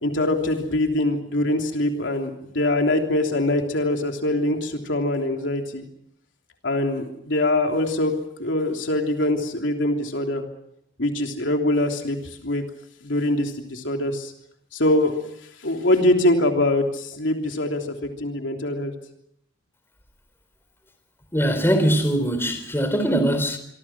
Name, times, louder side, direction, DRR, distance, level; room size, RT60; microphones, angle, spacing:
voice 1, 0.0-5.8 6.6-8.1 8.4-10.4 11.0-12.2 12.4-12.6 13.0-14.3 14.7-15.1 15.6-18.9, left 1 dB, 75° left, 3.3 m, -23 dB
voice 2, 21.3-23.6, right 1 dB, 15° left, 4.1 m, -21 dB
26.0 x 24.5 x 6.1 m
head